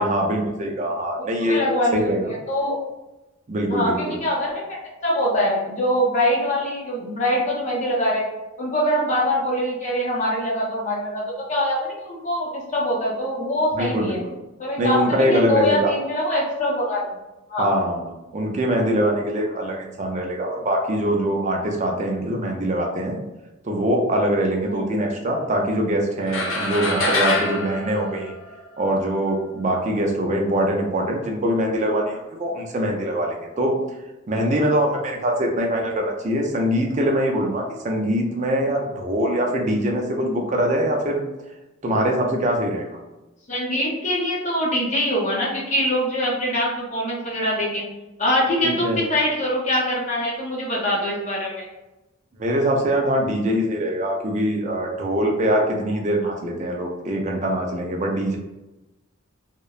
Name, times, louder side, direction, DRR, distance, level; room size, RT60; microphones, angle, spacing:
voice 1, 0.0-1.6 1.9-2.3 3.5-4.2 13.7-14.2 14.8-15.9 17.6-18.0 18.3-23.2 23.6-28.3 28.8-33.8 34.3-41.2 41.8-43.0 48.6-49.0 52.4-58.4, equal, 35° right, 1 dB, 0.4 m, -23 dB
voice 2, 1.2-2.1 2.5-2.8 3.7-8.2 8.6-14.2 14.6-17.0 17.5-17.7 24.7-25.0 43.5-47.8 48.2-51.7, equal, 35° left, -4 dB, 0.6 m, -23 dB
sound 1, 26.3-28.9, left 2 dB, 70° left, 0.6 m, -25 dB
2.8 x 2.1 x 2.3 m, 1.0 s
head